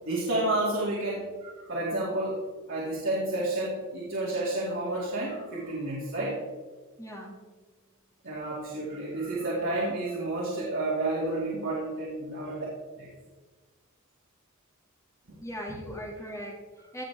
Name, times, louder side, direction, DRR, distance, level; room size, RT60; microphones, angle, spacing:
voice 1, 0.0-2.4 2.7-6.4 8.2-12.7 13.0-13.1 15.3-15.4, right 2 dB, 65° right, -6 dB, 2.4 m, -30 dB
voice 2, 7.0-7.4 10.8-11.0 15.4-17.0, equal, 15° left, -1 dB, 2.2 m, -39 dB
16.5 x 6.4 x 3.5 m, 1.4 s
head